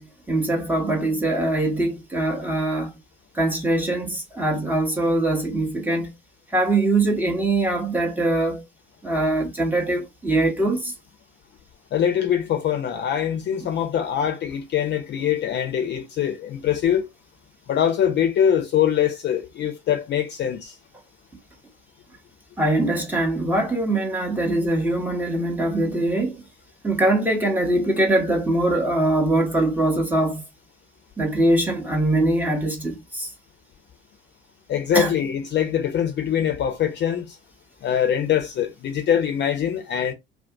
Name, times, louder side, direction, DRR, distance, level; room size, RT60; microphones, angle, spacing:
voice 1, 0.0-2.9 3.3-6.1 6.5-8.6 9.0-10.9 22.6-26.4 26.8-30.4 31.2-33.3 34.9-35.1, right 2 dB, 5° right, 0.9 m, -22 dB
voice 2, 11.9-17.1 17.7-20.7 34.7-37.4 37.8-40.1, left 9 dB, 35° left, 0.8 m, -23 dB
2.6 x 2.4 x 3.4 m
figure-of-eight pair, 70°, 30 cm